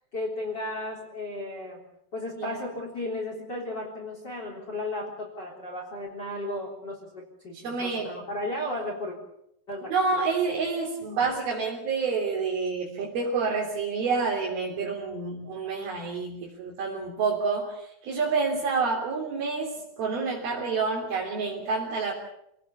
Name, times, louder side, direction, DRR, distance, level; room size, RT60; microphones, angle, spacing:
voice 1, 0.1-1.8 2.1-9.2 9.7-10.2, left 1 dB, 25° left, -1 dB, 4.0 m, -34 dB
voice 2, 7.5-8.1 9.9-22.1, right 4 dB, 70° right, -3 dB, 5.3 m, -28 dB
27.0 x 18.5 x 7.2 m, 0.78 s
omnidirectional pair, 4.5 m